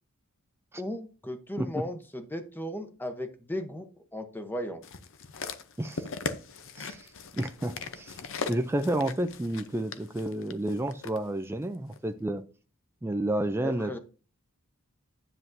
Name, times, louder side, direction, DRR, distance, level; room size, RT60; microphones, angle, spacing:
voice 1, 0.8-4.8 13.6-14.0, left 1 dB, 10° left, 7 dB, 0.9 m, -36 dB
sound 1, 4.8-11.2 11.9-12.0, left 4 dB, 60° left, 0.7 m, -39 dB
voice 2, 6.8-8.2 8.5-12.4 13.0-14.0, right 1 dB, 10° right, 7 dB, 0.4 m, -31 dB
9.8 x 7.5 x 2.6 m, 0.37 s
head